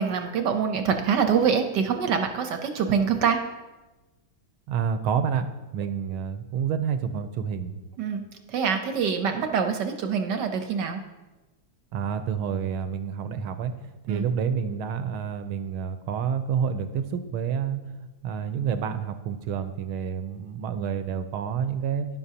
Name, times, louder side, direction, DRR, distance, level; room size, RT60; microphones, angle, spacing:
voice 1, 0.0-3.4 8.0-11.0 14.1-14.2, right 6 dB, 65° right, 6 dB, 1.2 m, -25 dB
voice 2, 4.7-5.5 5.7-7.7 11.9-13.7 14.0-17.8 18.2-22.1, right 7 dB, 90° right, 9 dB, 1.6 m, -28 dB
13.0 x 10.5 x 2.8 m, 1.1 s
omnidirectional pair, 2.3 m